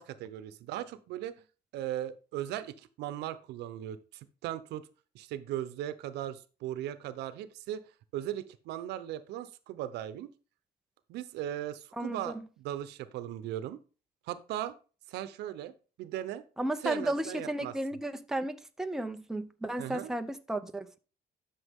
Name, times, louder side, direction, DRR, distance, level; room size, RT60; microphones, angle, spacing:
voice 1, 0.0-1.4 1.7-4.9 5.1-7.8 8.1-10.3 11.1-13.8 14.3-14.7 15.1-15.7 16.0-16.4 16.8-17.7 19.8-20.1, right 12 dB, 85° right, 0.9 m, -38 dB
voice 2, 11.9-12.4 16.6-21.0, right 1 dB, 5° right, 0.8 m, -34 dB
11.5 x 6.2 x 3.7 m
cardioid pair, 110°, 17 cm